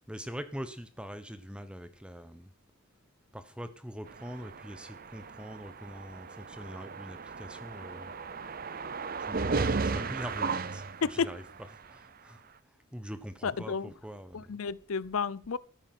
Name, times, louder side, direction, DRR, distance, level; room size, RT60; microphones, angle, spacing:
voice 1, 0.1-2.5 3.3-8.1 9.2-14.8, equal, 5° right, 1.0 m, -43 dB
sound 1, 4.1-11.7, right 4 dB, 45° right, 0.6 m, -35 dB
voice 2, 13.4-13.9 14.3-15.6, left 5 dB, 80° left, 0.6 m, -31 dB
14.0 x 9.9 x 6.0 m
head